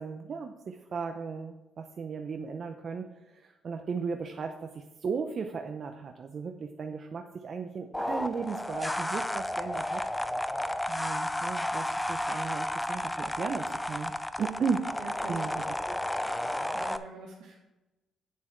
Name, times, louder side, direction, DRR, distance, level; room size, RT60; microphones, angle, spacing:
voice 1, 0.0-10.0 10.9-14.1 14.4-14.9 15.3-16.0, right 5 dB, 50° right, 4 dB, 0.7 m, -36 dB
sound 1, 7.9-17.0, left 1 dB, 10° left, 0.5 m, -32 dB
voice 2, 15.0-15.7 16.7-17.5, right 4 dB, 85° right, -4 dB, 1.8 m, -44 dB
8.6 x 7.2 x 4.5 m, 1.0 s
cardioid pair, 90°, 0 cm